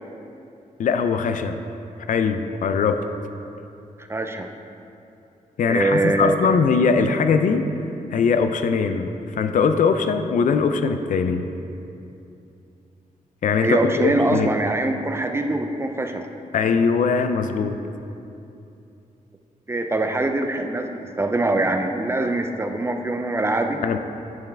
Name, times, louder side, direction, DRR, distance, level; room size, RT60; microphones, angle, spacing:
voice 1, 0.8-1.6 2.1-3.0 5.6-7.7 8.1-11.5 13.4-14.5 16.5-17.8 23.8-24.0, left 5 dB, 65° left, 8 dB, 0.4 m, -21 dB
voice 2, 4.0-4.5 5.7-6.3 13.6-16.2 19.7-23.8, right 2 dB, 20° right, 5 dB, 0.3 m, -23 dB
8.8 x 5.7 x 3.3 m, 2.7 s
wide cardioid pair, 150°, 14 cm